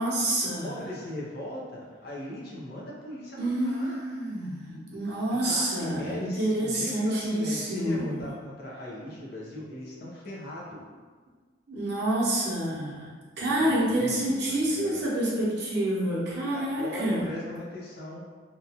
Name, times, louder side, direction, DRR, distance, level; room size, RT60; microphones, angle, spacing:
voice 1, 0.0-0.7 3.4-8.2 11.7-17.3, right 1 dB, 60° right, -6 dB, 0.8 m, -28 dB
voice 2, 0.6-4.0 5.4-10.8 13.6-15.0 16.5-18.2, left 1 dB, 55° left, -5 dB, 0.7 m, -39 dB
2.8 x 2.3 x 2.8 m, 1.5 s
head